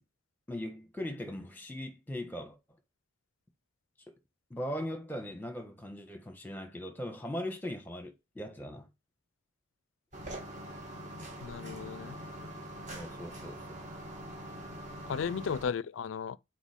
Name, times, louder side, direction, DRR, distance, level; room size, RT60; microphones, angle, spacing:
voice 1, 0.5-2.5 4.5-8.9 12.9-13.8, left 1 dB, 10° left, 1.3 m, -39 dB
sound 1, 10.1-15.6, right 1 dB, 35° right, 2.1 m, -43 dB
voice 2, 11.4-12.2 15.1-16.4, left 6 dB, 70° left, 0.4 m, -35 dB
7.2 x 4.6 x 3.5 m
head